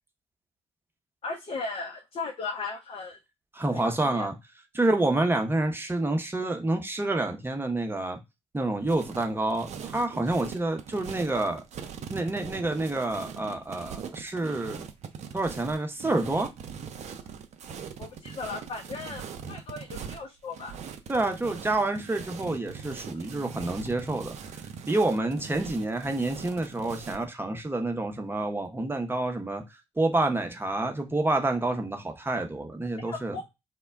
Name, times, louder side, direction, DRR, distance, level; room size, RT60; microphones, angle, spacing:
voice 1, 1.2-3.2 3.7-4.3 18.0-20.8 33.0-33.4, left 4 dB, 40° left, 0.6 m, -37 dB
voice 2, 3.5-4.3 4.7-8.2 8.5-11.6 12.1-14.9 15.3-16.5 21.1-24.4 24.9-29.6 30.0-33.4, right 2 dB, 15° right, 0.8 m, -28 dB
sound 1, 8.8-27.3, right 7 dB, 55° right, 0.5 m, -41 dB
2.2 x 2.0 x 3.4 m
hypercardioid pair, 45°, 14 cm